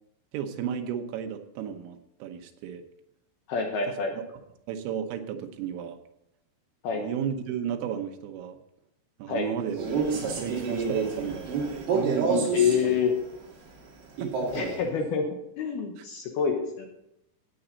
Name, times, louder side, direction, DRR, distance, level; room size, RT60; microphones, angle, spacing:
voice 1, 0.3-2.8 4.7-6.0 6.9-8.6 9.2-13.0 14.2-14.5 16.0-16.1, right 8 dB, 85° right, 6 dB, 3.6 m, -33 dB
voice 2, 3.5-4.2 6.8-7.0 9.3-9.5 12.5-13.2 14.5-15.3 15.6-16.9, left 6 dB, 70° left, 2 dB, 2.5 m, -27 dB
Male speech man speaking, 9.7-12.8 14.2-14.8, right 4 dB, 55° right, 4.3 m, -28 dB
13.5 x 8.9 x 4.0 m, 0.82 s
omnidirectional pair, 5.7 m